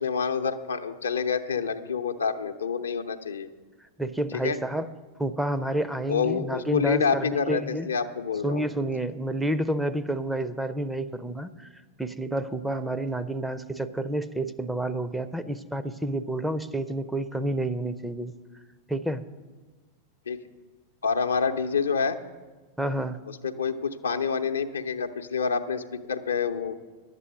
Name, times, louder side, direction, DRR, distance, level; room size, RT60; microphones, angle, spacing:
voice 1, 0.0-3.5 4.3-4.6 6.1-8.6 20.3-20.4 21.0-22.2 23.3-26.8, left 6 dB, 70° left, 7 dB, 0.7 m, -27 dB
voice 2, 4.0-4.9 5.2-7.9 8.4-11.7 12.0-18.3 18.9-19.2 22.8-23.2, right 1 dB, 5° right, 11 dB, 0.6 m, -29 dB
11.0 x 8.2 x 7.7 m, 1.3 s
figure-of-eight pair, 90°, 0 cm